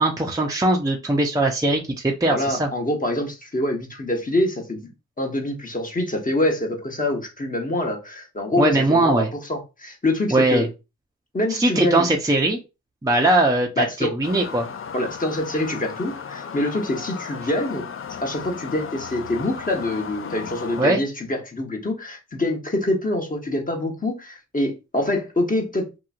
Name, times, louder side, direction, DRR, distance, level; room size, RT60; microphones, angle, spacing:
voice 1, 0.0-2.7 8.6-9.3 10.3-10.7 11.6-12.6 13.0-14.7 20.8-21.0, right 2 dB, 10° right, 0.6 m, -20 dB
voice 2, 2.3-4.9 5.2-10.7 11.3-12.1 13.8-14.1 14.9-17.9 18.2-25.9, left 1 dB, 25° left, 1.1 m, -25 dB
sound 1, 14.2-20.8, left 7 dB, 40° left, 0.5 m, -35 dB
2.9 x 2.6 x 2.4 m
supercardioid pair, 50°, 33 cm